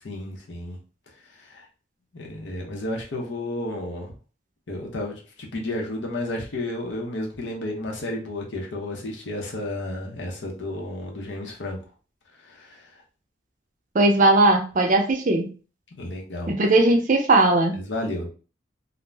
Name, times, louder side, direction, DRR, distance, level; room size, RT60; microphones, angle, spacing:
voice 1, 0.0-0.8 1.3-1.7 2.1-4.1 4.7-11.8 12.4-12.9 15.9-16.5 17.7-18.3, left 1 dB, 70° left, 0 dB, 0.7 m, -32 dB
voice 2, 13.9-15.5 16.5-17.8, right 2 dB, 45° right, 4 dB, 0.5 m, -18 dB
2.5 x 2.1 x 3.2 m, 0.36 s
head